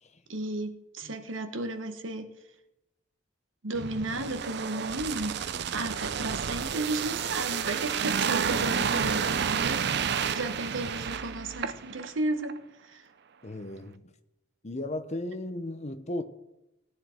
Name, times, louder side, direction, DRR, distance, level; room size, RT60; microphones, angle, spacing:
voice 1, 0.3-2.3 3.6-5.4 5.7-9.8 10.1-12.6 12.8-13.0, right 2 dB, 85° right, 1.2 m, -34 dB
sound 1, 3.7-12.1 12.4-12.6, right 7 dB, 60° right, 0.5 m, -30 dB
voice 2, 13.4-14.1 14.6-16.2, left 1 dB, 35° left, 0.9 m, -36 dB
17.0 x 9.8 x 4.5 m
head